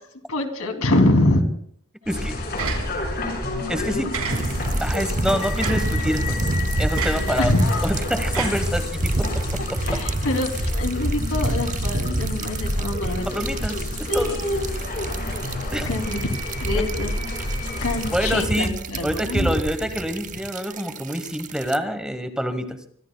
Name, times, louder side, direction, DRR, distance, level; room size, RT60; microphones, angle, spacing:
voice 1, 0.3-1.4 3.7-4.1 7.1-7.9 9.9-13.3 14.1-14.7 15.6-16.3 16.6-17.1 17.8-19.6, left 1 dB, 90° left, 5 dB, 2.8 m, -24 dB
sound 1, 2.1-18.4, left 1 dB, 50° left, 6.0 m, -28 dB
voice 2, 2.1-2.4 3.7-4.1 4.8-6.4 6.8-7.5 7.8-9.2 13.3-13.9 14.1-14.4 15.7-15.9 16.7-16.8 18.1-18.7 19.0-22.8, equal, 5° right, 8 dB, 1.2 m, -26 dB
sound 2, 2.6-3.2 4.1-4.8 5.6-6.0 7.0-7.4 8.3-9.2, right 6 dB, 90° right, 4.2 m, -31 dB
sound 3, 4.3-21.8, right 2 dB, 35° right, 0.7 m, -29 dB
25.0 x 23.5 x 2.3 m, 0.64 s
head